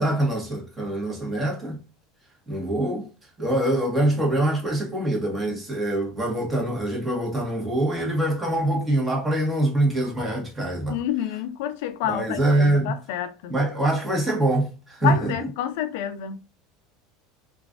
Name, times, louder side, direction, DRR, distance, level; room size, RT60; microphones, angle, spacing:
voice 1, 0.0-1.8 2.5-3.1 3.4-11.0 12.0-12.9 13.5-15.5, right 1 dB, 20° right, 1.5 m, -24 dB
voice 2, 10.9-13.5 15.0-16.4, left 10 dB, 75° left, 0.4 m, -28 dB
3.0 x 2.5 x 2.5 m
hypercardioid pair, 95°, 0 cm